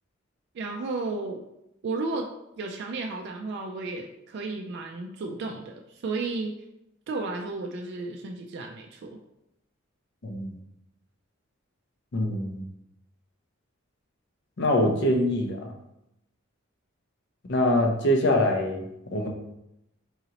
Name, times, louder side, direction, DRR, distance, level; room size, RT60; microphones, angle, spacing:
voice 1, 0.5-1.4 1.8-6.6 7.1-9.2, right 3 dB, 50° right, 1 dB, 0.3 m, -33 dB
voice 2, 10.2-10.6 12.1-12.6 14.6-15.7 17.4-19.3, left 1 dB, 55° left, 3 dB, 0.6 m, -24 dB
3.9 x 2.9 x 2.8 m, 0.84 s
head